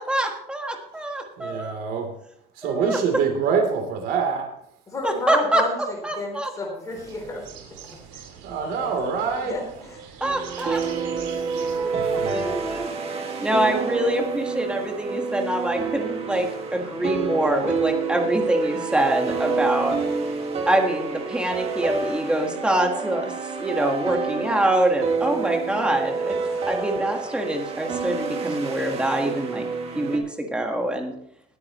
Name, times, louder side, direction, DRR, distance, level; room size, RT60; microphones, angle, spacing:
voice 1, 0.0-1.8 2.6-3.0 5.0-5.6 6.0-6.5 10.2-10.8 11.8-12.9 13.1-20.0 20.7-23.3 23.6-26.4 26.7-29.7 29.9-31.1, right 1 dB, 5° right, 3 dB, 1.5 m, -25 dB
voice 2, 1.4-2.1 2.5-4.5 7.9-8.0 8.4-9.6 10.6-12.6 13.1-13.5, right 6 dB, 55° right, 4 dB, 3.2 m, -27 dB
voice 3, 4.9-7.5 7.8-8.2 8.6-8.9 9.4-10.0, left 2 dB, 20° left, 0 dB, 3.5 m, -32 dB
sound 1, 6.9-12.9, right 7 dB, 85° right, 2.5 m, -44 dB
sound 2, 10.2-30.2, right 4 dB, 35° right, 1.9 m, -28 dB
20.0 x 9.7 x 3.1 m, 0.72 s
cardioid pair, 175°, 19 cm